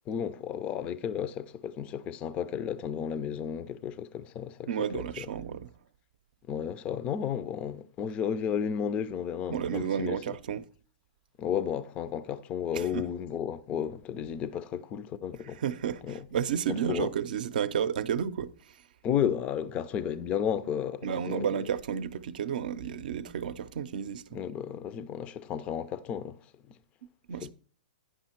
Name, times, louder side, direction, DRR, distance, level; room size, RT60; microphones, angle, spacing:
voice 1, 0.1-5.3 6.5-10.2 11.4-15.6 16.0-16.2 16.7-17.1 19.0-21.5 24.3-26.4 27.4-27.5, left 8 dB, 25° left, 0.4 m, -33 dB
voice 2, 4.7-5.7 9.5-10.6 12.7-13.0 15.5-18.7 21.0-24.4 27.3-27.5, right 8 dB, 65° right, 0.6 m, -32 dB
10.0 x 5.6 x 4.4 m
hypercardioid pair, 140°, 5 cm